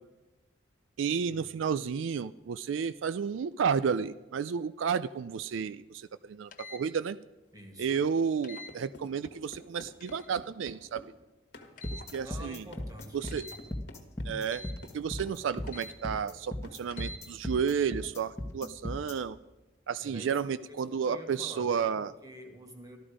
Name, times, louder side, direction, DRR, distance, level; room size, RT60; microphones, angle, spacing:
voice 1, 1.0-7.2 7.8-11.0 11.9-12.6 13.1-13.5 14.2-14.7 14.9-19.4 19.9-22.1, right 6 dB, 85° right, 15 dB, 0.4 m, -32 dB
sound 1, 6.5-6.8 8.4-8.7 10.0-10.3 11.8-12.1 13.3-13.6 14.5-14.8 15.7-16.0 16.9-17.2, left 2 dB, 45° left, 0.9 m, -46 dB
voice 2, 7.5-8.0 12.1-13.6 20.0-20.4 20.7-23.0, equal, 20° right, 4 dB, 1.8 m, -48 dB
sound 2, 8.7-11.1 11.5-15.8 16.0-16.2 16.6-16.8, left 2 dB, 60° left, 1.5 m, -50 dB
sound 3, 11.8-19.1, left 1 dB, 15° left, 1.1 m, -37 dB
14.0 x 13.0 x 5.0 m, 1.1 s
head